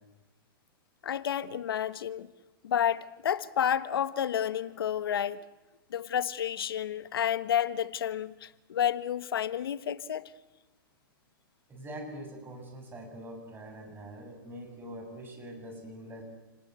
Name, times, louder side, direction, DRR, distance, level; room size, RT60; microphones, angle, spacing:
voice 1, 1.0-2.3 2.6-5.4 5.9-10.3, left 9 dB, 85° left, 1.4 m, -30 dB
voice 2, 11.7-16.2, right 1 dB, 20° right, 7.2 m, -44 dB
29.0 x 19.0 x 8.3 m
hypercardioid pair, 135°, 12 cm